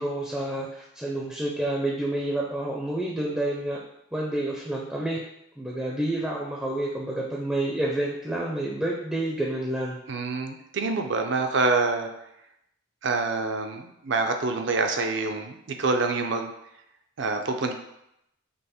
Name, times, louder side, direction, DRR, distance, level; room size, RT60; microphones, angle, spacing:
voice 1, 0.0-3.8 4.1-5.2 5.6-10.0, right 1 dB, 5° right, -3 dB, 0.4 m, -29 dB
voice 2, 10.1-12.1 13.0-16.5 17.2-17.7, right 3 dB, 55° right, 5 dB, 0.5 m, -26 dB
5.4 x 2.1 x 4.2 m, 0.80 s
head